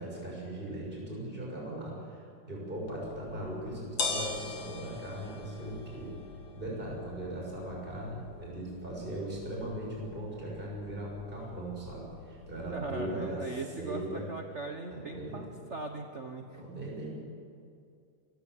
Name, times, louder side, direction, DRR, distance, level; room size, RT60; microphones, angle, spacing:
voice 1, 0.0-6.2 6.5-14.2 14.9-15.4 16.5-17.1, right 1 dB, 15° right, -3 dB, 6.8 m, -39 dB
sound 1, 2.9-12.9, left 4 dB, 80° left, 3.7 m, -42 dB
voice 2, 12.7-16.6, right 3 dB, 70° right, 4 dB, 0.6 m, -39 dB
26.5 x 16.0 x 8.0 m, 2.4 s
omnidirectional pair, 3.4 m